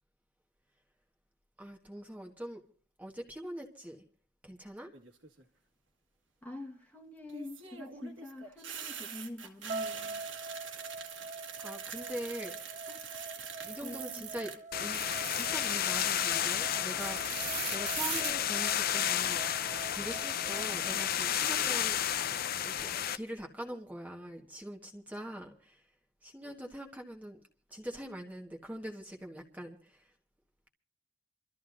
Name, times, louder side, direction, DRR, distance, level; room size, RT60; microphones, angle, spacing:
voice 1, 1.6-2.6 3.0-4.0 4.4-4.9 11.6-12.9 13.6-14.5 14.8-15.0 15.3-17.2 17.7-19.5 19.9-22.2 22.6-25.8 26.2-27.4 27.7-30.0, equal, 10° right, 1 dB, 1.4 m, -43 dB
sound 1, 4.9-5.4 7.3-14.6 14.9-16.6 17.0-18.3, right 8 dB, 70° right, 1.6 m, -42 dB
voice 2, 6.4-10.2 12.9-13.0 13.8-14.3, left 2 dB, 10° left, 1 dB, 1.4 m, -46 dB
sound 2, 9.7-21.8, right 3 dB, 35° right, 1.4 m, -45 dB
sound 3, 14.7-23.2, left 10 dB, 50° left, 0.6 m, -32 dB
28.0 x 13.5 x 2.6 m, 0.43 s
head